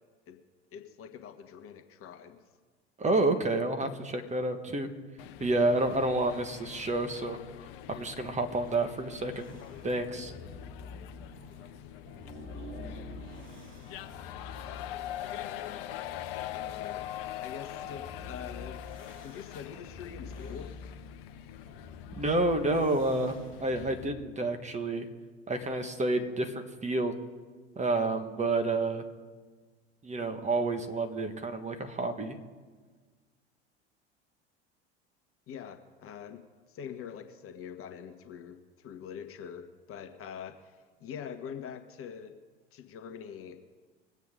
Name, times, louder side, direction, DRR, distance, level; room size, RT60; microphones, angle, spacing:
voice 1, 0.7-2.4 10.1-10.4 12.6-12.9 15.3-15.9 16.5-17.1 17.4-18.9 19.2-20.8 35.5-36.4 36.7-42.3 42.7-43.6, left 8 dB, 40° left, 7 dB, 1.4 m, -44 dB
voice 2, 3.0-4.9 5.4-7.4 7.9-9.5 9.8-10.3 22.2-25.1 25.5-27.1 27.7-29.0 30.0-32.4, right 2 dB, 20° right, 6 dB, 1.5 m, -29 dB
sound 1, 5.2-24.0, left 12 dB, 60° left, 0.9 m, -43 dB
sound 2, 9.3-24.2, left 2 dB, 40° right, 4.8 m, -48 dB
22.5 x 8.1 x 3.8 m, 1.4 s
hypercardioid pair, 75°, 33 cm